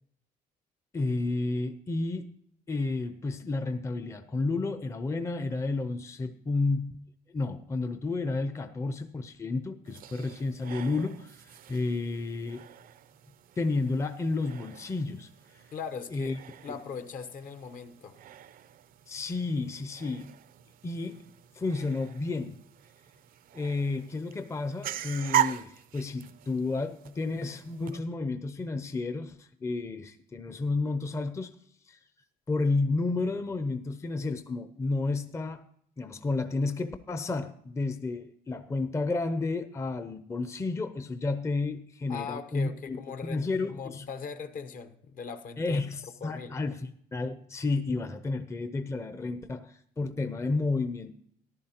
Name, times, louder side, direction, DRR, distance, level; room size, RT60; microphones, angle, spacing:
voice 1, 0.9-2.3 2.7-7.1 7.3-12.7 13.6-15.3 16.1-16.4 19.1-20.3 20.8-22.7 23.5-31.5 31.9-32.0 32.5-35.6 36.0-44.1 45.6-51.1, left 3 dB, 15° left, 10 dB, 0.6 m, -31 dB
sound 1, 9.8-28.0, right 11 dB, 60° right, 0.5 m, -39 dB
voice 2, 15.7-16.4 16.6-18.2 42.1-45.8 46.2-46.6, left 6 dB, 55° left, 9 dB, 1.0 m, -40 dB
14.5 x 11.0 x 2.9 m, 0.65 s
cardioid pair, 110°, 17 cm